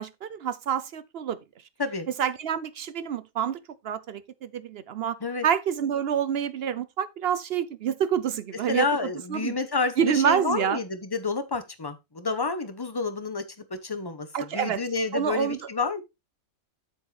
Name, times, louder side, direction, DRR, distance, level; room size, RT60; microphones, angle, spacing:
voice 1, 0.0-1.4 2.2-5.2 5.4-8.9 9.3-9.6 10.0-10.8 14.3-14.8 15.1-15.7, right 8 dB, 60° right, 0.6 m, -27 dB
voice 2, 8.7-13.4 13.7-14.3 14.5-16.0, left 4 dB, 20° left, 0.8 m, -29 dB
7.8 x 7.4 x 3.3 m
omnidirectional pair, 1.6 m